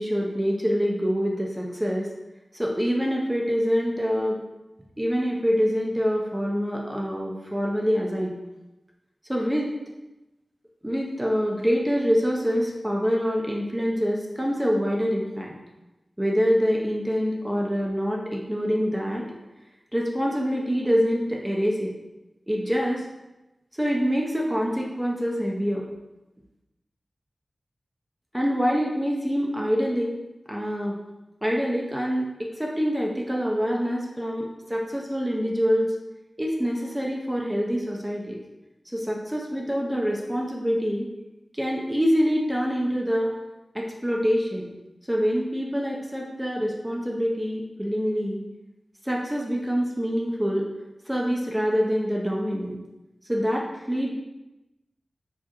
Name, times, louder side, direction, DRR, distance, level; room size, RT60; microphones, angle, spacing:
voice 1, 0.0-2.1 2.5-4.4 5.0-8.4 9.3-9.7 10.8-15.5 16.2-19.2 19.9-21.9 22.5-23.0 23.7-25.8 28.3-30.1 30.5-30.9 31.4-35.9 36.4-38.4 38.9-41.1 41.5-43.3 43.7-44.7 45.1-48.4 49.0-50.7 51.1-52.8 53.2-54.1, equal, 10° right, -2 dB, 0.6 m, -25 dB
4.6 x 3.4 x 2.9 m, 1.0 s
wide cardioid pair, 85°, 0 cm